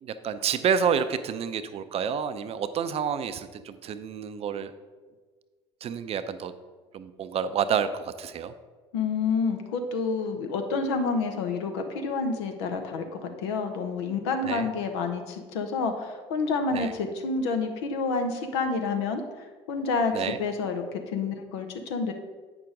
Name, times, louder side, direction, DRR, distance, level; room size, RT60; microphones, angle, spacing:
voice 1, 0.0-4.7 5.8-6.5 6.9-8.5 14.4-14.7 16.7-16.9 20.1-20.4, right 7 dB, 45° right, 11 dB, 0.5 m, -29 dB
voice 2, 8.9-19.2 19.7-22.1, left 4 dB, 75° left, 5 dB, 0.9 m, -29 dB
8.2 x 5.9 x 3.8 m, 1.4 s
hypercardioid pair, 65°, 14 cm